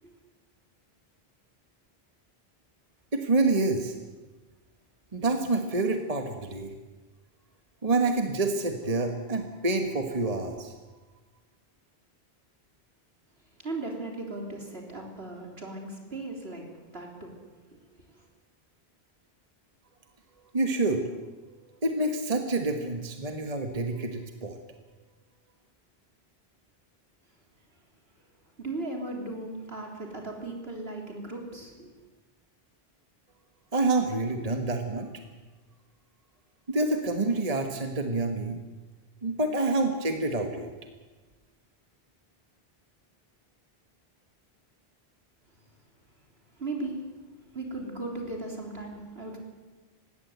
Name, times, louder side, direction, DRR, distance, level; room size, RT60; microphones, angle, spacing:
voice 1, 3.1-3.9 5.1-6.7 7.8-10.7 20.5-21.0 21.8-24.6 33.7-35.1 36.7-38.6 39.2-40.7, right 2 dB, 35° right, 5 dB, 1.5 m, -27 dB
voice 2, 13.6-16.6 16.9-17.4 17.7-17.8 18.1-18.2 28.6-31.9 46.5-47.0 47.5-49.4, right 2 dB, 70° right, 1 dB, 3.8 m, -37 dB
20.0 x 16.5 x 8.0 m, 1.2 s
omnidirectional pair, 1.1 m